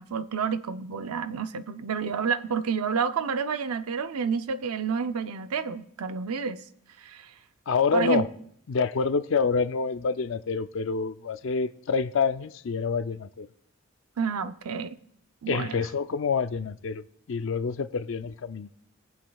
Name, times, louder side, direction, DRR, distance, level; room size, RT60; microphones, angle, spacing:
voice 1, 0.0-6.6 7.0-7.3 7.9-8.2 14.2-15.0 15.4-15.8, right 6 dB, 90° right, 0.5 m, -29 dB
voice 2, 7.7-8.3 8.7-13.5 15.5-17.0 17.3-18.7, left 5 dB, 60° left, 0.4 m, -27 dB
22.5 x 7.7 x 2.3 m
head